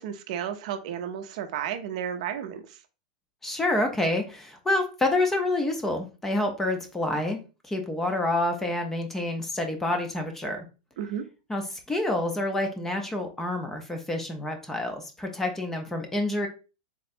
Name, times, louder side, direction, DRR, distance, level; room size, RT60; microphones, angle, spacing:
voice 1, 0.0-2.8 11.0-11.3, right 9 dB, 55° right, 8 dB, 0.5 m, -33 dB
voice 2, 3.4-7.4 7.7-10.6 11.5-16.5, left 2 dB, 5° left, 5 dB, 0.5 m, -28 dB
3.6 x 2.2 x 4.2 m, 0.32 s
supercardioid pair, 165°, 5 cm